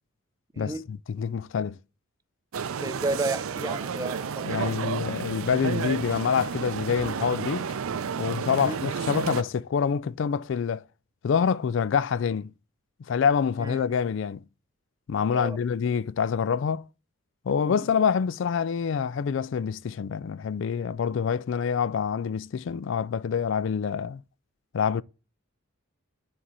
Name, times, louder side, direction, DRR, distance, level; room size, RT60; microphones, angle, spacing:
voice 1, 0.6-1.8 4.5-7.7 8.2-10.8 11.2-12.5 13.1-14.4 15.1-16.9 17.5-24.2 24.7-25.0, left 6 dB, 60° left, 0.3 m, -26 dB
sound 1, 2.5-9.4, right 6 dB, 75° right, 0.5 m, -31 dB
voice 2, 2.8-4.9 8.6-8.8 13.6-14.0 15.3-15.6 17.7-17.8, right 2 dB, 15° right, 0.5 m, -33 dB
7.5 x 4.2 x 4.7 m
head